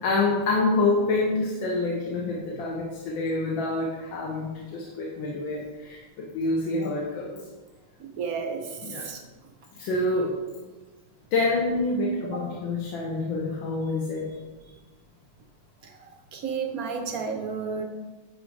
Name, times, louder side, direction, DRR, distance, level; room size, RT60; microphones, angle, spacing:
voice 1, 0.0-6.0 6.3-7.4 8.8-9.0 9.8-10.3 11.3-14.3, left 2 dB, 65° left, -3 dB, 1.7 m, -27 dB
voice 2, 8.0-9.2 12.3-12.4 16.3-17.8, right 5 dB, 65° right, 3 dB, 0.9 m, -32 dB
10.5 x 3.9 x 4.7 m, 1.3 s
omnidirectional pair, 2.4 m